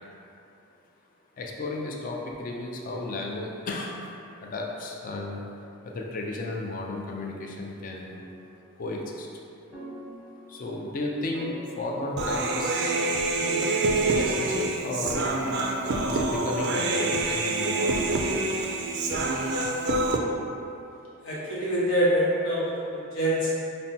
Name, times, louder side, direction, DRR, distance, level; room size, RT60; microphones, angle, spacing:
voice 1, 1.4-4.1 4.4-5.4 5.8-8.2 8.8-9.3 10.5-13.0 14.0-15.2 16.0-18.6, left 2 dB, 40° left, -1 dB, 0.3 m, -34 dB
sound 1, 8.1-8.7 9.7-10.8 11.3-12.7 13.4-14.5 15.0-16.1, left 1 dB, 5° right, 0.9 m, -42 dB
Human voice, 12.2-20.2, right 2 dB, 55° right, 0.3 m, -26 dB
voice 2, 21.2-23.5, equal, 80° left, -7 dB, 1.0 m, -25 dB
5.4 x 2.1 x 2.7 m, 2.7 s
head